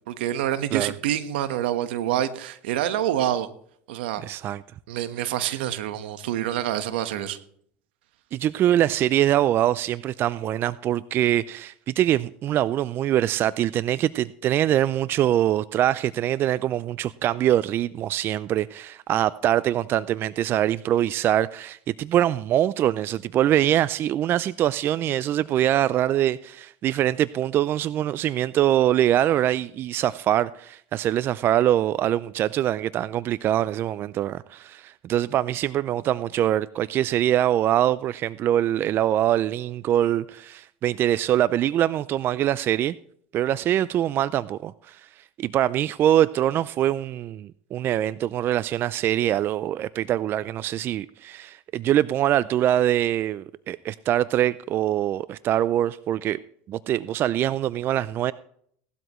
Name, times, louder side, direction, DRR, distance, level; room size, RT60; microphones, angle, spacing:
voice 1, 0.1-3.5 3.9-4.2 4.9-7.4, right 11 dB, 80° right, 1.2 m, -27 dB
voice 2, 4.2-4.6 8.3-42.9 43.3-56.4 56.7-58.3, right 12 dB, 40° right, 0.4 m, -23 dB
17.5 x 12.5 x 3.1 m
supercardioid pair, 105°, 6 cm